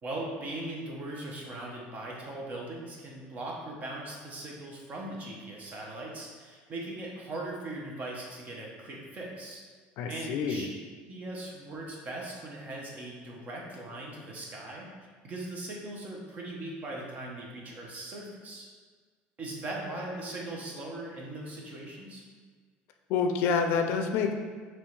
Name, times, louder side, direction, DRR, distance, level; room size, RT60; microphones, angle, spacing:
voice 1, 0.0-9.6 10.1-10.7 11.1-14.9 15.2-18.6 19.4-22.2, right 2 dB, 40° right, -2 dB, 0.9 m, -39 dB
voice 2, 10.0-10.7 23.1-24.3, left 5 dB, 70° left, 5 dB, 0.4 m, -27 dB
4.3 x 3.1 x 3.2 m, 1.5 s
cardioid pair, 130°, 4 cm